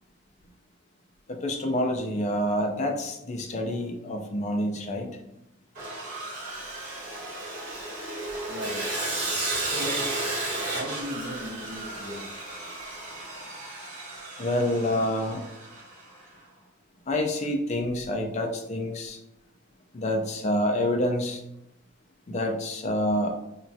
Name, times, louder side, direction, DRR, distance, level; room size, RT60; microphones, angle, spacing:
voice 1, 1.3-5.1 14.4-15.4 17.1-19.2 19.9-21.4 22.3-23.4, left 1 dB, 35° left, 3 dB, 0.4 m, -27 dB
Sawing, 5.8-16.0, right 2 dB, 40° right, 1.4 m, -33 dB
voice 2, 8.5-8.9 9.5-12.3, equal, 60° right, -1 dB, 0.6 m, -38 dB
3.2 x 2.2 x 2.6 m, 0.82 s
head